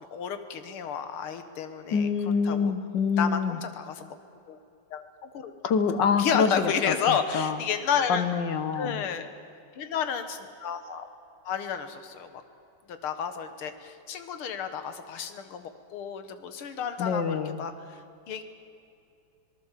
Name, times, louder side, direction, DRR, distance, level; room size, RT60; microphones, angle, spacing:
voice 1, 0.0-2.1 2.5-2.7 3.2-4.2 4.5-4.6 4.9-5.5 6.2-8.3 8.7-9.3 9.8-11.1 11.5-12.4 13.0-18.0 18.3-18.4, left 7 dB, 75° left, 9 dB, 2.3 m, -31 dB
voice 2, 1.9-3.6 5.6-6.9 7.3-7.6 8.1-9.0 17.0-17.6, left 6 dB, 60° left, 11 dB, 1.5 m, -26 dB
26.5 x 19.0 x 7.4 m, 2.6 s
omnidirectional pair, 2.4 m